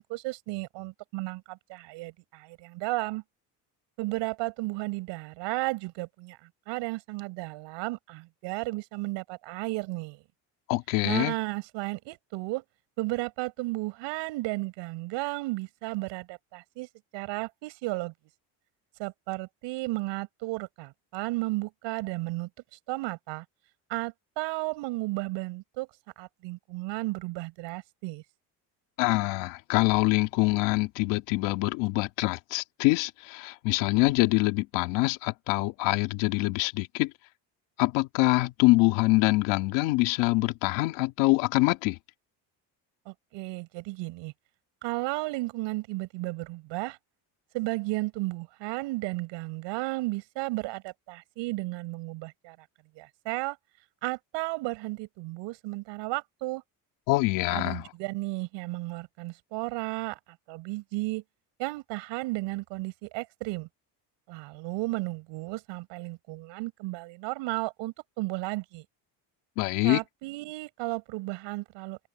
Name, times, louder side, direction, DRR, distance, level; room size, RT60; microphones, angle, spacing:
voice 1, 0.0-3.2 4.0-6.4 6.7-10.2 11.0-12.6 13.0-16.9 17.1-18.1 19.0-23.4 23.9-25.9 26.2-28.2 43.1-44.3 44.8-47.0 47.5-52.6 52.9-53.6 54.0-56.6 57.5-60.2 60.5-61.2 61.6-63.7 64.3-68.8 69.8-72.0, right 22 dB, 85° right, 6.5 m, -34 dB
voice 2, 10.7-11.4 29.0-37.1 37.8-42.0 57.1-57.8 69.6-70.0, left 21 dB, 90° left, 2.4 m, -25 dB
cardioid pair, 115°, 43 cm